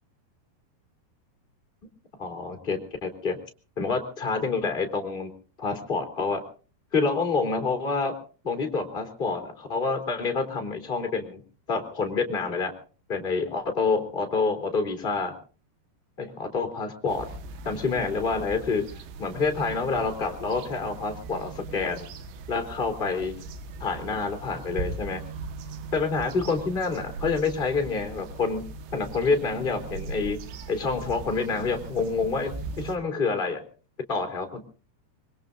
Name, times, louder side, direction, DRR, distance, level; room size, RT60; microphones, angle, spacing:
voice 1, 2.2-3.4 3.8-5.3 5.6-6.4 6.9-8.1 8.4-11.4 11.7-12.7 13.1-15.3 16.2-17.3 17.6-18.9 19.2-22.0 22.5-23.3 23.8-25.2 25.9-28.7 28.9-30.4 30.7-32.5 32.8-33.6 34.1-34.6, left 4 dB, 15° left, 5 dB, 2.4 m, -27 dB
sound 1, 17.1-33.0, right 4 dB, 90° right, 3.5 m, -39 dB
25.0 x 22.5 x 2.5 m, 0.38 s
omnidirectional pair, 4.8 m